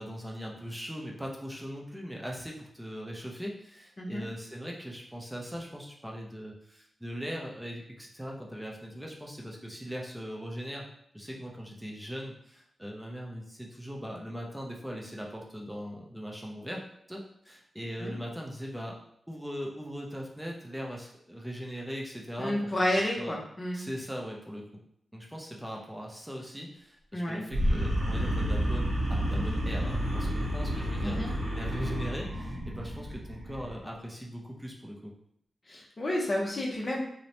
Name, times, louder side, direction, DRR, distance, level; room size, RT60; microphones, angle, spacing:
voice 1, 0.0-10.9 11.1-16.8 17.1-19.0 19.3-22.6 23.2-23.4 23.7-24.8 25.1-35.1, equal, 5° right, -1 dB, 0.5 m, -40 dB
voice 2, 22.4-23.8 27.1-27.4 31.0-31.3 35.7-37.0, left 1 dB, 35° left, -2 dB, 0.6 m, -30 dB
sound 1, 27.5-33.8, equal, 85° right, 0.8 m, -30 dB
3.0 x 2.0 x 2.6 m, 0.72 s
wide cardioid pair, 105°, 0 cm